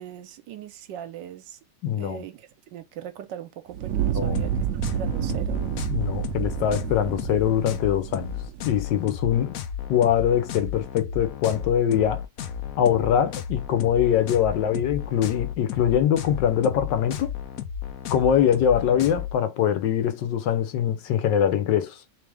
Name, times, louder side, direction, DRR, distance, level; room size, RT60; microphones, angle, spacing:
voice 1, 0.0-1.6 2.0-4.5 4.9-5.6, right 10 dB, 80° right, 1.4 m, -39 dB
voice 2, 1.8-2.2 4.2-4.4 5.9-8.3 8.6-9.6 9.9-12.2 12.8-17.3 18.1-22.0, left 9 dB, 80° left, 1.4 m, -23 dB
Fire, 3.7-8.9, right 10 dB, 65° right, 0.8 m, -29 dB
sound 1, 4.3-19.3, left 8 dB, 65° left, 0.9 m, -34 dB
3.4 x 3.4 x 3.4 m
omnidirectional pair, 1.9 m